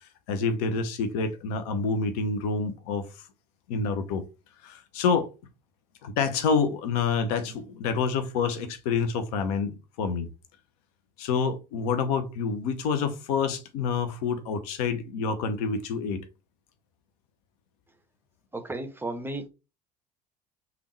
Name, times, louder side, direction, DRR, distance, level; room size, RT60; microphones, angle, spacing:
voice 1, 0.3-3.0 3.7-4.3 4.6-5.3 6.0-10.3 11.2-16.2, left 5 dB, 60° left, 0.6 m, -27 dB
voice 2, 18.5-19.5, right 2 dB, 10° right, 0.6 m, -34 dB
3.4 x 2.3 x 3.1 m
figure-of-eight pair, 60°, 21 cm